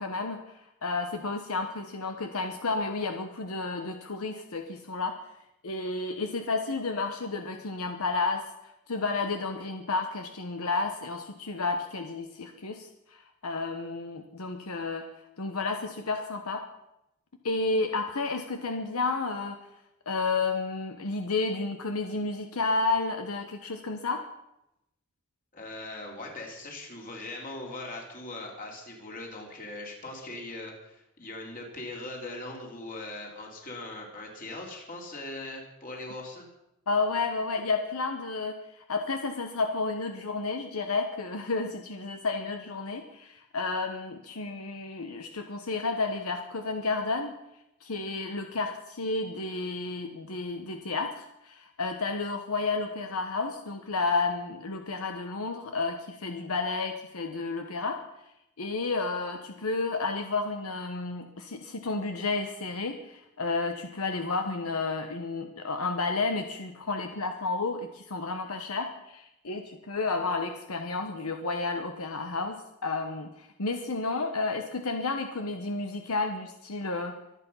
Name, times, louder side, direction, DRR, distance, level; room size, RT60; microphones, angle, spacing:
voice 1, 0.0-5.2 5.6-8.5 8.9-15.1 15.4-16.6 17.4-19.6 20.1-24.2 36.9-47.4 47.8-58.0 58.6-77.2, left 3 dB, 75° left, 5 dB, 1.1 m, -31 dB
voice 2, 25.5-36.5, left 2 dB, 40° left, 0 dB, 3.6 m, -40 dB
24.0 x 8.4 x 5.6 m, 0.85 s
head